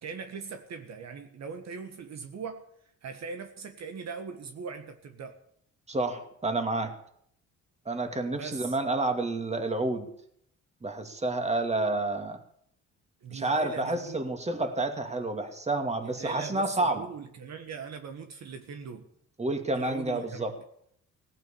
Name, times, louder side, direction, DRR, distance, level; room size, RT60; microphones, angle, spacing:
voice 1, 0.0-2.7 3.0-5.4 8.3-8.8 13.2-14.2 16.0-19.1 19.7-20.4, right 5 dB, 60° right, 7 dB, 1.6 m, -40 dB
voice 2, 5.9-6.9 7.9-10.1 10.8-12.4 13.3-17.1 19.4-20.5, right 2 dB, 20° right, 6 dB, 2.6 m, -29 dB
17.5 x 9.2 x 8.6 m, 0.67 s
cardioid pair, 90°, 30 cm